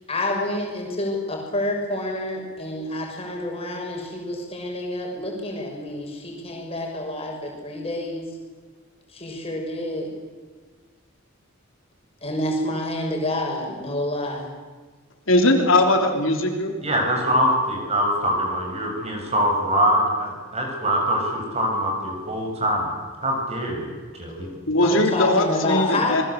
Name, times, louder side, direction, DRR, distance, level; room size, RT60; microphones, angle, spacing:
voice 1, 0.1-8.3 9.1-10.1 12.2-14.5 24.8-26.2, left 1 dB, 30° left, 0 dB, 6.4 m, -28 dB
voice 2, 15.3-16.7 24.7-26.2, left 1 dB, 70° left, 3 dB, 3.5 m, -19 dB
voice 3, 16.8-22.9 23.2-24.5, equal, 30° right, 1 dB, 6.6 m, -23 dB
27.5 x 21.5 x 8.3 m, 1.4 s
head